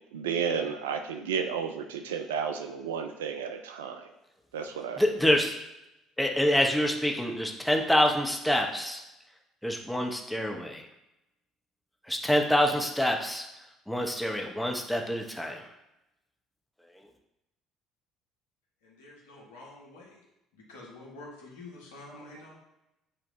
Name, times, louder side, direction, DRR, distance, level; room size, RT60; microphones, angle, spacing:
voice 1, 0.1-4.1 4.5-5.0, right 6 dB, 85° right, 7 dB, 0.5 m, -32 dB
voice 2, 5.0-5.5 6.2-9.0 9.6-10.9 12.1-13.4 13.9-15.7 17.0-17.1, equal, 5° left, 2 dB, 1.1 m, -26 dB
voice 3, 18.8-20.2 20.5-22.6, left 2 dB, 85° left, -3 dB, 1.7 m, -48 dB
7.7 x 3.2 x 3.9 m, 0.90 s
hypercardioid pair, 60°, 0 cm